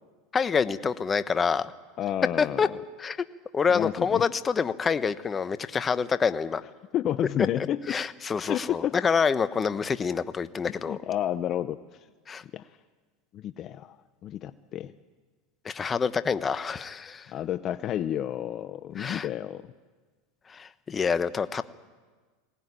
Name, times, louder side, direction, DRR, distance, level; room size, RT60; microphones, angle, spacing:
voice 1, 0.3-1.7 2.4-2.7 3.0-3.2 3.5-6.6 7.9-11.0 12.3-12.4 15.6-17.3 19.0-19.3 20.5-21.6, left 6 dB, 25° left, 13 dB, 1.0 m, -27 dB
voice 2, 2.0-2.8 3.7-4.3 6.6-8.0 8.5-8.9 10.6-12.1 12.5-12.8 13.3-14.9 17.3-19.7, left 11 dB, 45° left, 13 dB, 0.7 m, -31 dB
21.0 x 18.0 x 9.7 m, 1.4 s
hypercardioid pair, 105°, 0 cm